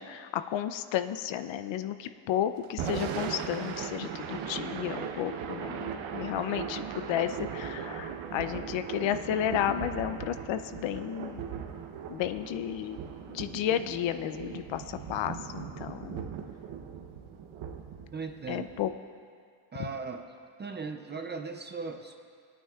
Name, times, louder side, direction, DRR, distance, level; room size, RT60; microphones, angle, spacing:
voice 1, 0.0-11.4 12.1-13.0 13.3-16.2 18.5-18.9, left 10 dB, 70° left, 11 dB, 0.6 m, -32 dB
Thunder / Rain, 2.6-18.9, right 7 dB, 85° right, 1.0 m, -38 dB
voice 2, 18.1-18.7 19.7-20.3 20.6-22.1, right 4 dB, 25° right, 6 dB, 0.4 m, -38 dB
23.0 x 9.1 x 2.4 m, 2.2 s
cardioid pair, 135°, 47 cm